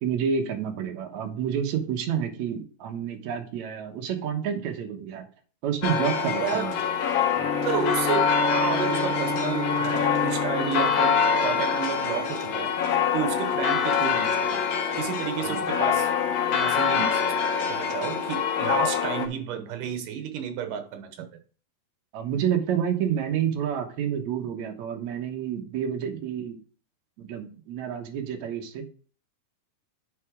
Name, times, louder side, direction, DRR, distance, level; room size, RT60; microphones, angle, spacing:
voice 1, 0.0-5.3 5.6-6.7 15.4-15.7 22.1-26.6 27.2-28.9, right 8 dB, 65° right, 2.3 m, -29 dB
sound 1, 5.8-19.3, left 7 dB, 70° left, 2.1 m, -25 dB
Bowed string instrument, 7.3-12.2, left 2 dB, 35° left, 2.1 m, -32 dB
voice 2, 7.6-14.6 14.9-16.1 16.5-17.3 17.7-21.3, right 8 dB, 80° right, 2.6 m, -31 dB
9.5 x 4.2 x 5.0 m
omnidirectional pair, 3.7 m